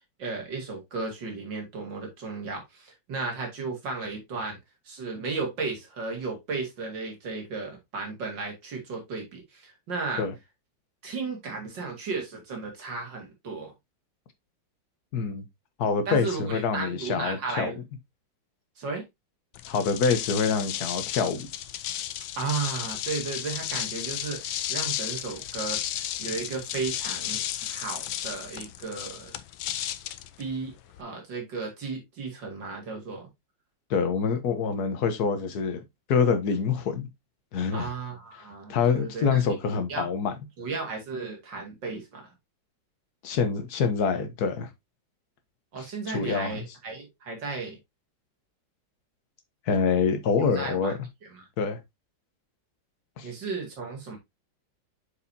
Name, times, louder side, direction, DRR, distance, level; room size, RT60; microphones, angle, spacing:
voice 1, 0.2-4.6 4.9-10.2 11.0-13.7 16.1-17.7 18.8-19.0 22.4-29.3 30.4-30.7 31.0-33.3 37.7-39.4 39.7-40.1 40.6-42.3 45.7-47.8 50.5-50.9 51.3-51.4 53.2-54.2, right 4 dB, 70° right, 2.8 m, -34 dB
voice 2, 15.1-15.4 15.8-17.7 19.7-21.5 33.9-35.8 36.1-37.1 37.5-37.9 38.4-40.3 43.2-44.7 45.8-46.6 49.7-50.9 51.6-51.8 53.2-53.3, left 5 dB, 55° left, 1.5 m, -26 dB
sound 1, 19.5-31.0, left 12 dB, 85° left, 1.4 m, -34 dB
8.4 x 4.9 x 2.7 m
omnidirectional pair, 2.1 m